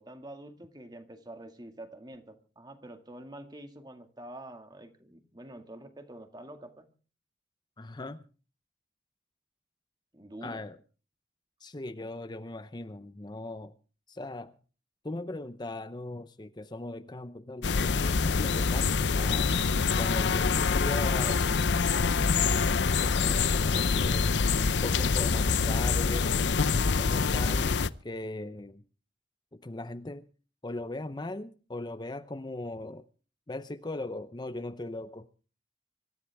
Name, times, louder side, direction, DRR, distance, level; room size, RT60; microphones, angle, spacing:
voice 1, 0.0-6.9 10.1-10.6 23.4-23.6, right 1 dB, 25° right, 2.0 m, -47 dB
voice 2, 7.8-8.3 10.4-10.8 11.6-13.7 14.1-14.6 15.0-19.5 20.0-22.7 23.0-24.3 24.8-26.6 26.9-28.8 29.5-30.3 30.6-33.0 33.5-35.3, left 2 dB, 25° left, 0.7 m, -39 dB
sound 1, 17.6-27.9, left 5 dB, 85° left, 0.7 m, -25 dB
25.5 x 13.5 x 3.5 m
head